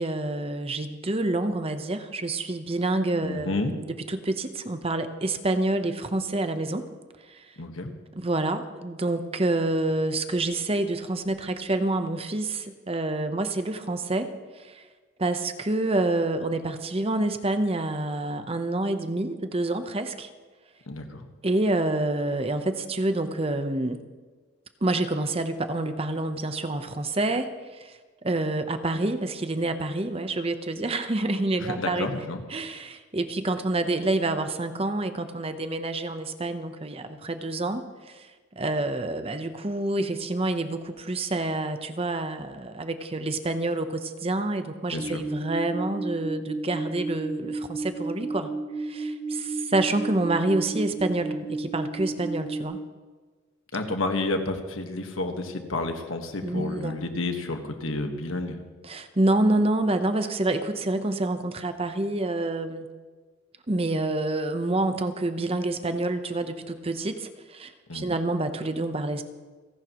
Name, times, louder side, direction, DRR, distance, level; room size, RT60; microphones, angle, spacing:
voice 1, 0.0-6.9 7.3-7.4 8.1-14.8 15.2-20.3 21.4-24.0 24.8-32.1 32.5-38.3 38.6-48.5 48.8-52.8 56.4-57.0 58.8-62.9 63.7-69.2, right 2 dB, 30° right, 8 dB, 0.9 m, -28 dB
voice 2, 3.2-3.7 7.6-7.9 20.9-21.3 31.6-32.4 44.9-45.2 53.7-58.6 67.9-68.1, left 2 dB, 85° left, 5 dB, 1.5 m, -30 dB
sound 1, 44.9-52.6, right 2 dB, 85° right, 3.9 m, -33 dB
29.5 x 11.0 x 3.1 m, 1.4 s
head